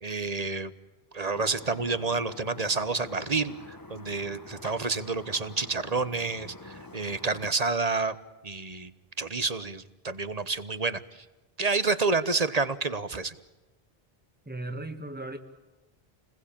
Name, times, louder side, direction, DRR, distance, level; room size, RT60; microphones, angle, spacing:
voice 1, 0.0-0.7 1.1-8.1 8.4-8.9 9.2-11.0 11.6-13.3, right 4 dB, 40° right, 14 dB, 1.2 m, -29 dB
sound 1, 1.3-7.5, left 3 dB, 20° left, 1.1 m, -46 dB
voice 2, 14.5-15.4, right 2 dB, 10° right, 6 dB, 1.9 m, -36 dB
29.5 x 21.0 x 8.7 m, 1.1 s
omnidirectional pair, 1.0 m